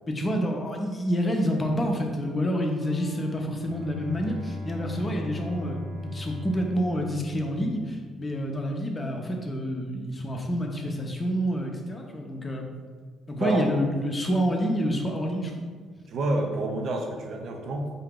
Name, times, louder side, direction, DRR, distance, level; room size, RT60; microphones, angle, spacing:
voice 1, 0.1-12.7 13.3-15.6, equal, 25° left, 2 dB, 0.7 m, -28 dB
Bass guitar, 2.8-6.3, right 1 dB, 10° right, 0.8 m, -46 dB
Bowed string instrument, 3.6-8.2, left 1 dB, 85° right, 1.1 m, -38 dB
voice 2, 16.1-17.9, right 2 dB, 50° right, 2 dB, 0.6 m, -28 dB
3.8 x 2.8 x 3.7 m, 1.5 s
figure-of-eight pair, 45°, 0 cm